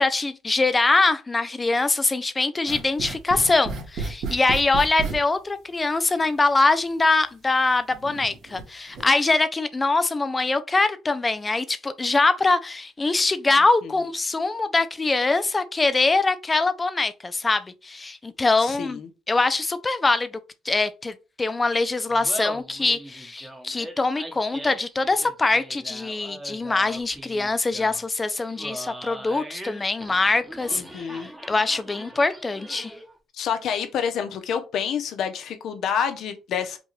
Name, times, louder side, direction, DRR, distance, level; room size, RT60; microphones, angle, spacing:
voice 1, 0.0-19.0 19.3-20.4 20.6-30.8 31.5-32.9, left 3 dB, 20° left, 0.5 m, -23 dB
sound 1, 2.7-5.2 6.2-6.3 7.0-7.1 7.9-8.6 8.9-9.1, right 4 dB, 65° right, 1.6 m, -32 dB
voice 2, 18.6-19.1 30.7-31.3 33.3-36.8, left 7 dB, 70° left, 0.9 m, -28 dB
Laughter, 22.1-33.1, right 1 dB, 10° right, 1.1 m, -40 dB
5.2 x 2.4 x 3.3 m
cardioid pair, 105°, 0 cm